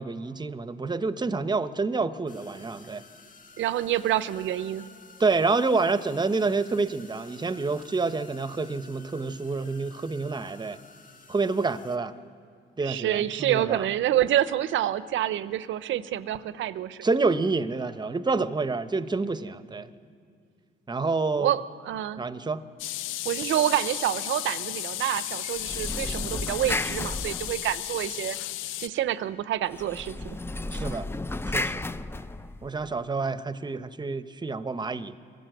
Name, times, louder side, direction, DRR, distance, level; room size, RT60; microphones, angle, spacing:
voice 1, 0.0-3.0 5.2-10.8 11.3-12.1 12.8-13.8 17.0-19.9 20.9-21.5 22.2-22.6 30.7-31.1 31.5-31.8 32.6-35.2, right 3 dB, 20° right, 13 dB, 0.8 m, -28 dB
sound 1, 2.3-12.0, left 4 dB, 40° left, 1.7 m, -52 dB
voice 2, 3.6-4.9 12.8-17.1 21.4-22.2 23.2-28.4 28.8-30.4, right 12 dB, 75° right, 15 dB, 0.7 m, -27 dB
sound 2, 22.8-28.9, left 15 dB, 90° left, 0.4 m, -34 dB
sound 3, 25.6-28.1 29.7-32.9, left 2 dB, 10° left, 0.5 m, -33 dB
23.5 x 15.5 x 7.8 m, 2.3 s
cardioid pair, 90°, 20 cm